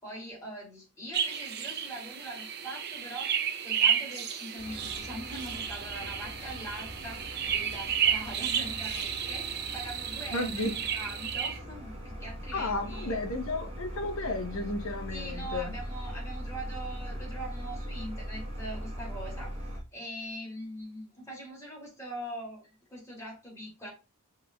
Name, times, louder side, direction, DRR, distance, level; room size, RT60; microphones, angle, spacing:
voice 1, 0.0-13.2 15.1-19.6 19.9-23.9, right 1 dB, 15° left, 2.5 m, -42 dB
sound 1, 1.1-11.6, right 8 dB, 50° right, 0.6 m, -32 dB
sound 2, 4.6-19.8, equal, 25° right, 1.1 m, -40 dB
voice 2, 10.3-10.7 12.5-15.7, left 2 dB, 70° left, 0.9 m, -33 dB
5.8 x 3.3 x 2.3 m
head